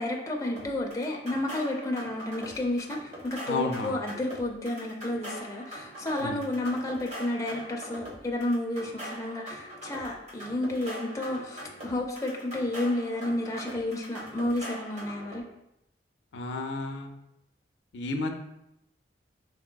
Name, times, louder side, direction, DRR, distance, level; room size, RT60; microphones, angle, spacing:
voice 1, 0.0-15.4, left 1 dB, 20° left, 0 dB, 0.5 m, -31 dB
sound 1, 0.6-15.4, equal, 40° right, 1.1 m, -42 dB
voice 2, 3.5-4.0 6.2-6.4 16.3-17.1 17.9-18.3, left 3 dB, 80° left, 4 dB, 0.5 m, -31 dB
4.6 x 3.6 x 2.2 m, 0.84 s
head